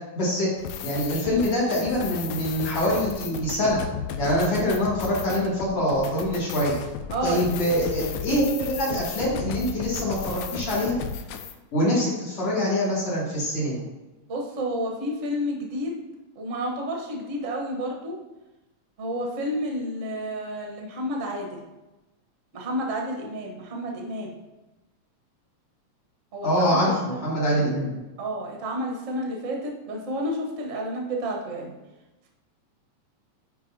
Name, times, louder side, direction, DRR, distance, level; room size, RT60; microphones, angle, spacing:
voice 1, 0.1-0.5 0.8-3.8 4.2-6.7 7.2-11.0 11.7-13.8 26.4-28.0, equal, 55° left, -6 dB, 2.7 m, -24 dB
sound 1, 0.6-11.5, left 7 dB, 85° left, 2.0 m, -34 dB
voice 2, 7.1-7.5 14.3-15.9 16.3-18.1 19.0-21.6 22.5-24.3 26.3-27.2 28.2-31.7, equal, 60° right, 0 dB, 0.8 m, -30 dB
11.5 x 4.7 x 2.8 m, 1.0 s
omnidirectional pair, 3.3 m